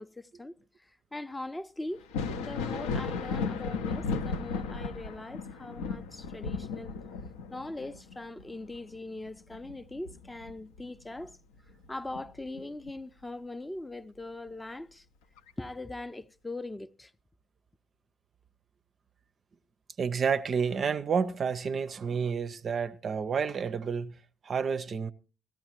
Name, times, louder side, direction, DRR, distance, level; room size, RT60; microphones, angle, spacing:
voice 1, 0.0-6.9 7.5-11.4 11.9-15.1 15.6-17.1, left 2 dB, 15° left, 0.6 m, -41 dB
Thunder, 2.0-11.3 11.7-12.9 14.5-14.6 15.4-15.5, left 4 dB, 70° left, 0.6 m, -35 dB
voice 2, 20.0-25.1, right 6 dB, 40° right, 0.5 m, -30 dB
17.5 x 13.5 x 3.0 m
figure-of-eight pair, 50°, 0 cm